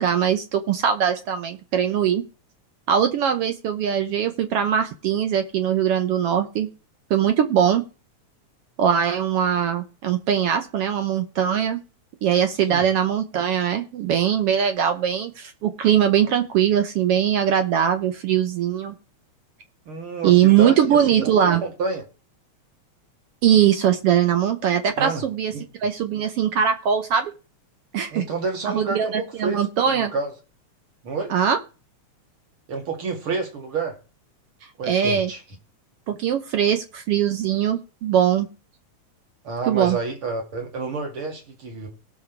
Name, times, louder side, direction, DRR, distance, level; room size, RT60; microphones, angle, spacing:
voice 1, 0.0-2.2 2.9-6.7 7.1-7.8 8.8-11.8 12.2-18.9 20.2-21.6 23.4-25.5 25.8-27.3 27.9-28.2 28.7-30.1 31.3-31.6 34.8-35.3 36.1-38.5 39.7-40.0, right 9 dB, 65° right, 1.7 m, -21 dB
voice 2, 19.9-22.0 25.0-25.2 25.5-25.6 28.1-30.3 31.0-31.3 32.7-34.0 34.8-35.4 39.4-41.9, right 4 dB, 45° right, 2.9 m, -29 dB
17.5 x 6.3 x 4.6 m
omnidirectional pair, 3.4 m